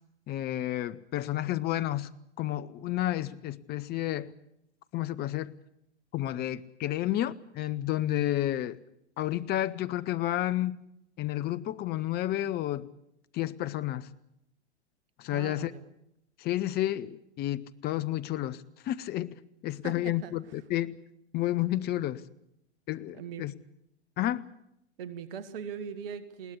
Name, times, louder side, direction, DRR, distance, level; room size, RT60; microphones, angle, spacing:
voice 1, 0.3-2.1 2.4-4.3 4.9-5.5 6.1-8.8 9.2-10.8 11.2-12.9 13.3-14.1 15.2-15.7 16.4-21.0 21.3-22.2 22.9-23.5 24.2-24.5, left 14 dB, 30° left, 0.9 m, -31 dB
voice 2, 15.3-15.8 19.8-20.3 23.1-23.5 25.0-26.6, right 7 dB, 55° right, 1.7 m, -40 dB
21.0 x 18.0 x 8.6 m
figure-of-eight pair, 100°, 34 cm